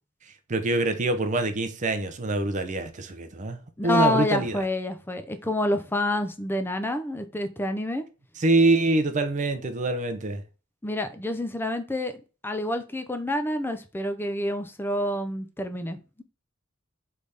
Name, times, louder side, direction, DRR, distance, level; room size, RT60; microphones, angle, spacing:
voice 1, 0.5-4.6 8.4-10.4, right 2 dB, 35° right, 0.6 m, -25 dB
voice 2, 3.8-8.0 10.8-12.2 12.4-16.0, left 1 dB, 10° left, 0.5 m, -28 dB
3.9 x 3.3 x 3.4 m
head